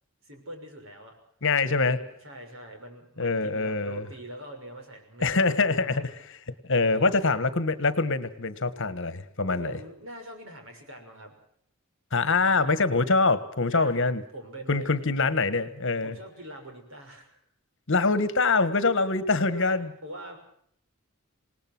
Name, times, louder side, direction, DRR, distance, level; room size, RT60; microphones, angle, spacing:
voice 1, 0.2-1.1 1.6-6.0 6.8-7.4 9.5-11.3 12.3-12.8 13.7-14.0 14.3-15.1 16.0-17.4 19.5-20.4, right 1 dB, 65° right, 4 dB, 6.3 m, -43 dB
voice 2, 1.4-2.0 3.2-4.0 5.2-6.1 6.6-9.7 12.1-14.2 14.7-16.1 17.9-19.9, left 3 dB, 60° left, 13 dB, 1.5 m, -24 dB
27.0 x 19.0 x 6.1 m, 0.66 s
head